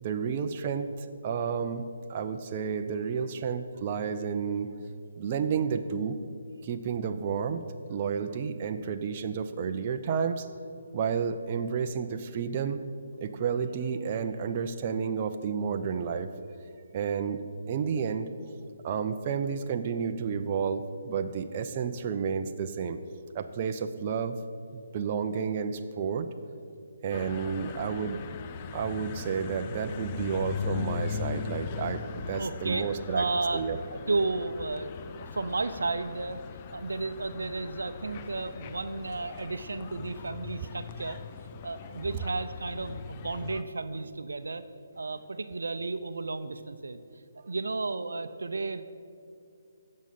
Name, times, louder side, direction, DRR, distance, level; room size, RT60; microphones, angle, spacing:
voice 1, 0.0-0.9 1.2-1.8 2.1-4.7 5.2-6.2 6.6-10.5 10.9-12.9 13.2-16.3 16.9-18.3 18.8-23.0 23.3-24.4 24.7-26.3 27.0-28.2 28.7-33.2 33.5-33.8, right 6 dB, 35° right, 7 dB, 0.6 m, -31 dB
sound 1, 27.1-43.6, left 7 dB, 30° left, 0.5 m, -39 dB
voice 2, 32.4-36.4 36.7-41.2 41.6-44.6 45.0-48.8, right 3 dB, 75° right, 11 dB, 0.7 m, -33 dB
16.5 x 6.5 x 5.9 m, 2.5 s
figure-of-eight pair, 145°, 0 cm